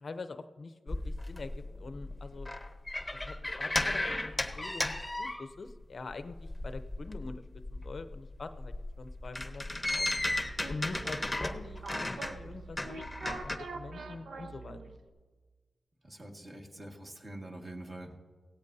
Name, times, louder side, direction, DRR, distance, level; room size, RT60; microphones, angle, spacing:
voice 1, 0.0-2.5 3.1-7.4 7.7-10.1 10.7-14.8, left 3 dB, 55° left, 9 dB, 0.6 m, -44 dB
sound 1, 0.9-5.8 6.1-13.6, left 1 dB, 15° left, 0.9 m, -35 dB
sound 2, 10.0-15.1, right 3 dB, 75° right, 1.0 m, -45 dB
voice 2, 16.0-18.2, right 1 dB, 35° right, 1 dB, 1.7 m, -45 dB
17.0 x 14.0 x 2.7 m, 1.4 s
wide cardioid pair, 80°, 0 cm